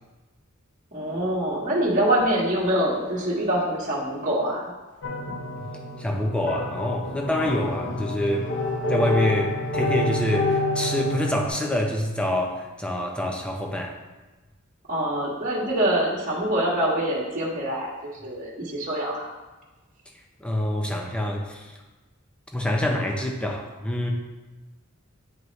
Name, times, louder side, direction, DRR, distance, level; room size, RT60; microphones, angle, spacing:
voice 1, 0.9-4.7 14.9-17.9 18.2-19.3, right 1 dB, 35° right, -5 dB, 1.7 m, -25 dB
sound 1, 5.0-11.5, left 2 dB, 55° left, 0.8 m, -28 dB
voice 2, 6.0-8.5 8.9-13.9 20.4-21.8 22.5-24.1, left 1 dB, 5° left, 1 dB, 0.7 m, -26 dB
9.3 x 5.1 x 3.2 m, 1.2 s
head